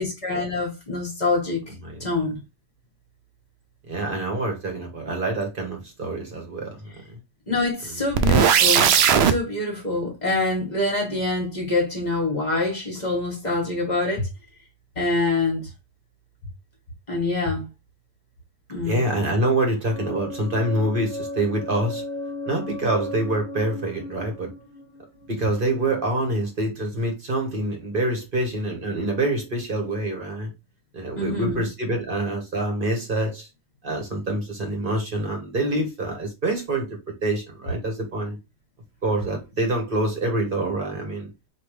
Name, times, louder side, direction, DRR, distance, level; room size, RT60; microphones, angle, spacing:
voice 1, 0.0-1.6 2.0-2.4 7.5-14.3 15.0-15.7 17.1-17.7 18.7-19.0 31.1-31.7, left 2 dB, 35° left, 1.4 m, -25 dB
voice 2, 3.9-7.2 7.9-8.0 18.8-22.0 22.5-24.5 25.3-30.5 30.9-33.5 33.8-38.4 39.0-41.3, right 1 dB, 45° right, 1.4 m, -26 dB
sound 1, 8.1-9.3, right 8 dB, 65° right, 0.7 m, -17 dB
sound 2, 19.9-25.7, left 1 dB, 25° right, 1.8 m, -35 dB
5.0 x 2.8 x 3.1 m
omnidirectional pair, 1.3 m